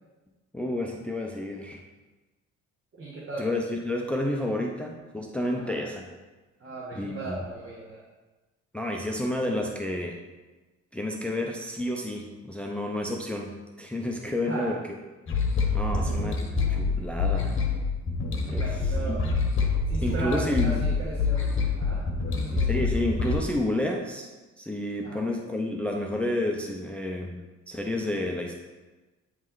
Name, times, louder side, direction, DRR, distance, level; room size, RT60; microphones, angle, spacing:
voice 1, 0.5-1.8 3.4-6.0 6.9-7.4 8.7-10.2 10.9-14.8 15.7-16.4 16.7-17.6 18.4-19.2 20.0-20.8 22.7-24.3 24.6-27.4 27.7-28.5, left 1 dB, 5° left, 1 dB, 0.6 m, -30 dB
voice 2, 2.9-3.5 5.5-5.7 6.6-8.0 14.4-14.7 15.9-16.3 18.4-19.2 19.9-22.6 25.0-25.2, right 2 dB, 45° right, -6 dB, 1.5 m, -37 dB
sound 1, 15.3-23.4, left 4 dB, 40° left, 1.0 m, -26 dB
8.5 x 3.2 x 3.9 m, 1.2 s
cardioid pair, 90°, 30 cm